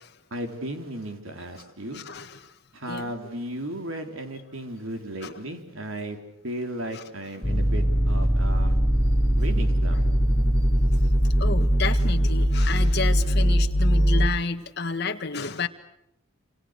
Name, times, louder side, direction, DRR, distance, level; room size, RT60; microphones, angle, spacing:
voice 1, 0.3-2.0 2.7-6.2 6.4-8.8 9.4-10.1, right 1 dB, 75° right, 6 dB, 3.7 m, -35 dB
voice 2, 1.9-2.5 2.9-3.1 5.2-5.4 6.9-7.0 9.9-10.1 11.4-15.7, left 4 dB, 50° left, 5 dB, 1.7 m, -31 dB
sound 1, 7.4-14.3, equal, 10° left, 6.6 m, -21 dB
27.5 x 27.5 x 6.6 m, 0.80 s
head